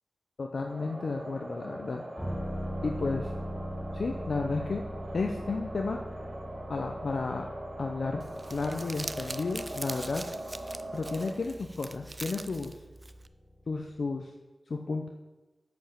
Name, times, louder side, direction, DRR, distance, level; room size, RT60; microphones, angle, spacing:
voice 1, 0.4-2.0 2.8-3.3 3.9-4.8 5.1-6.0 6.7-7.5 7.8-8.2 8.5-10.2 10.9-12.8 13.7-14.3 14.7-15.1, left 3 dB, 75° left, 2 dB, 0.7 m, -32 dB
sound 1, 0.7-11.3, right 1 dB, 65° right, 2.5 m, -42 dB
sound 2, 2.2-13.7 14.0-14.1, equal, 30° left, 3.0 m, -41 dB
Crumpling crinkling, 8.2-13.3, right 2 dB, 30° right, 0.4 m, -43 dB
7.8 x 5.4 x 7.2 m, 1.2 s
wide cardioid pair, 85°, 0 cm